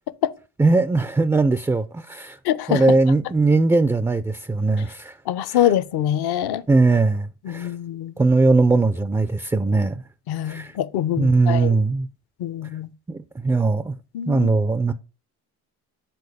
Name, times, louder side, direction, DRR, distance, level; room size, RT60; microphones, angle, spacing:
voice 1, 0.6-2.4 2.7-5.2 5.5-5.6 6.7-7.7 8.2-10.0 10.5-10.7 11.2-12.1 13.1-14.0 14.3-14.9, right 3 dB, 10° right, 0.3 m, -20 dB
voice 2, 2.4-2.8 5.3-6.6 7.4-8.1 10.3-11.8 12.4-12.9 14.1-14.5, left 11 dB, 65° left, 0.7 m, -24 dB
7.0 x 4.0 x 4.8 m
supercardioid pair, 75°, 40 cm